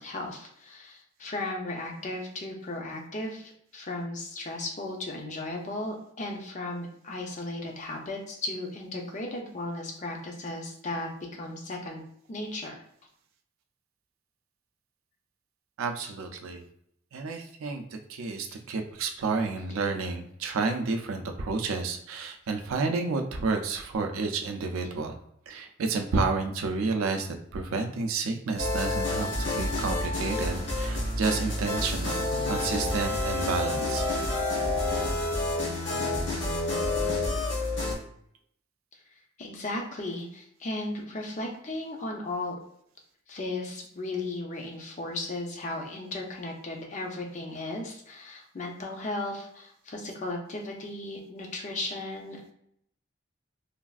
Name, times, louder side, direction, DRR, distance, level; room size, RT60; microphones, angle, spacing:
voice 1, 0.0-12.0 12.3-12.8 16.0-16.1 39.4-42.5 43.3-52.5, left 2 dB, 35° left, 1 dB, 0.5 m, -36 dB
voice 2, 15.8-16.6 17.1-25.2 25.5-34.0, right 4 dB, 85° right, 5 dB, 0.4 m, -30 dB
sound 1, 28.6-37.9, left 2 dB, 60° left, 1.1 m, -29 dB
3.2 x 2.4 x 2.4 m, 0.72 s
head